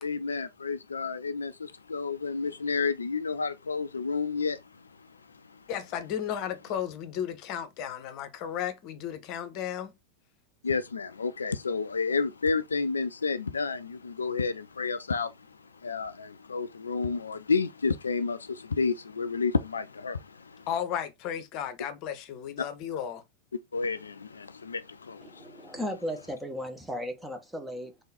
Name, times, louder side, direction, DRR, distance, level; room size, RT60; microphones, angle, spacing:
voice 1, 0.0-5.1 5.4-5.6 10.6-15.6 15.8-20.7 23.7-25.7, left 4 dB, 75° left, 0.3 m, -31 dB
voice 2, 5.7-10.0 20.7-23.2, left 9 dB, 40° left, 0.8 m, -34 dB
voice 3, 25.2-28.0, equal, 5° right, 0.9 m, -36 dB
3.8 x 3.4 x 4.0 m
figure-of-eight pair, 90°, 0 cm